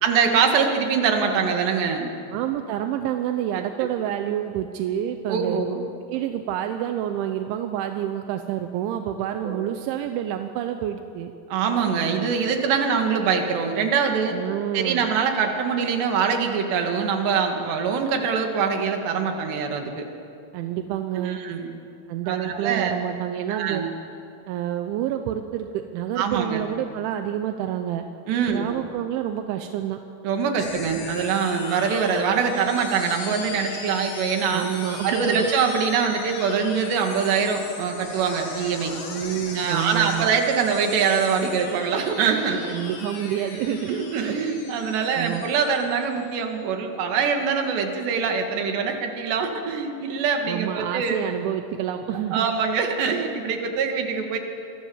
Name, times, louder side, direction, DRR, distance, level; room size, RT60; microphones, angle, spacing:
voice 1, 0.0-2.1 5.3-5.8 9.4-9.6 11.5-14.4 14.7-20.1 21.2-21.7 22.3-22.9 23.5-23.9 26.2-26.6 28.3-28.7 30.2-34.7 35.0-39.0 39.6-42.6 43.5-51.2 52.3-54.4, right 6 dB, 70° right, 3 dB, 4.2 m, -24 dB
voice 2, 2.3-5.6 6.1-11.3 14.3-15.1 20.5-21.4 22.1-23.8 24.5-28.1 28.5-30.0 34.5-35.5 39.1-40.3 42.6-43.9 45.1-45.4 50.4-52.5, right 11 dB, 85° right, 6 dB, 3.3 m, -28 dB
sound 1, 30.6-46.4, left 4 dB, 45° left, 2.4 m, -39 dB
26.5 x 24.0 x 7.3 m, 2.6 s
omnidirectional pair, 5.3 m